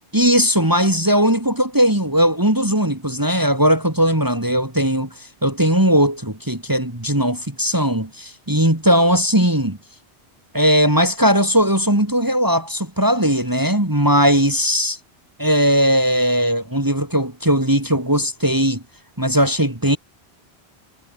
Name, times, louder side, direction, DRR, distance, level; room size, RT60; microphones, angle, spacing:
voice 1, 0.1-9.8 10.5-15.0 15.4-18.8 19.2-20.0, equal, 20° right, 3.4 m, -18 dB
omnidirectional pair, 1.1 m